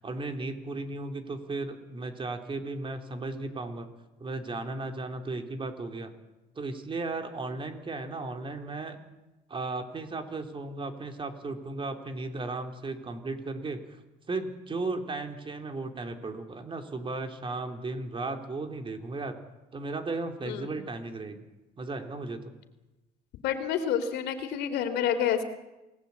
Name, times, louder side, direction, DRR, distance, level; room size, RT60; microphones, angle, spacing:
voice 1, 0.0-3.9 4.2-6.1 6.6-9.0 9.5-13.8 14.3-19.4 19.7-21.4 21.8-22.5, right 3 dB, 30° right, 5 dB, 3.5 m, -35 dB
voice 2, 23.4-25.4, left 9 dB, 85° left, 9 dB, 3.1 m, -28 dB
27.5 x 18.5 x 8.5 m, 1.0 s
cardioid pair, 110°, 17 cm